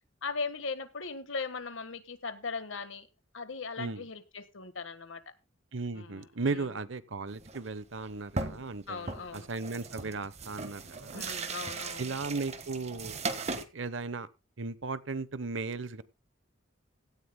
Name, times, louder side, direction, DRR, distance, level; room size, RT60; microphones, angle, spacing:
voice 1, 0.2-3.1 3.3-5.2 5.9-6.7 8.9-9.5 11.1-12.1, left 4 dB, 70° left, 1.5 m, -39 dB
voice 2, 5.7-11.2 12.0-13.2 13.7-14.3 14.6-16.0, right 3 dB, 65° right, 0.9 m, -36 dB
sound 1, 7.3-7.7 8.0-8.1 8.4-8.8 9.1-13.6, right 3 dB, 35° right, 1.4 m, -38 dB
17.0 x 13.5 x 2.2 m
head